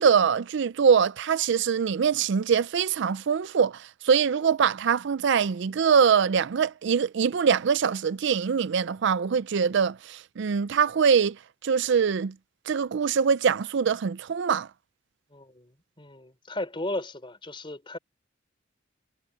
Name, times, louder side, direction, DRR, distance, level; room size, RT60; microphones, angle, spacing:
voice 1, 0.0-11.4 11.6-12.3 12.7-14.7, right 6 dB, 65° right, 0.4 m, -23 dB
voice 2, 15.3-15.7 16.0-18.0, left 1 dB, 25° left, 3.8 m, -35 dB
head